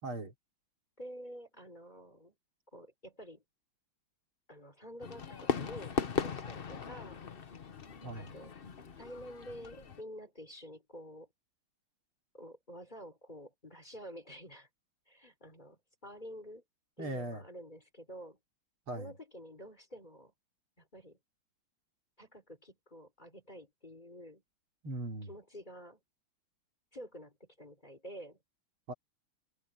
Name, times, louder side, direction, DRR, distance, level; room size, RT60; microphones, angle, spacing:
voice 1, 0.0-0.3 8.0-8.3 17.0-17.4 18.9-19.1 24.8-25.3 28.9-29.0, right 2 dB, 70° right, 3.9 m, -39 dB
voice 2, 1.0-2.3 2.7-3.4 4.5-7.2 8.2-8.5 9.0-11.3 12.3-14.7 15.1-16.6 17.0-18.4 18.9-20.3 20.8-21.2 22.2-24.4 25.2-26.0 26.9-28.4, equal, 20° left, 3.7 m, -49 dB
Fireworks, 5.0-10.0, left 6 dB, 45° left, 0.7 m, -38 dB
omnidirectional pair, 2.4 m